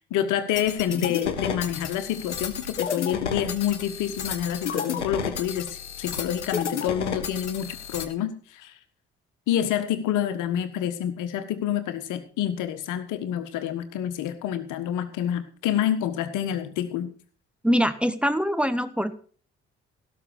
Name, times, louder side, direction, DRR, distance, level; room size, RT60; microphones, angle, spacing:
voice 1, 0.1-5.7 6.0-8.7 9.5-17.1, left 10 dB, 60° left, 11 dB, 1.4 m, -28 dB
sound 1, 0.6-8.0, left 7 dB, 85° left, 0.9 m, -32 dB
voice 2, 17.6-19.1, equal, 5° right, 12 dB, 1.2 m, -23 dB
17.5 x 6.3 x 6.2 m, 0.43 s
figure-of-eight pair, 40°, 34 cm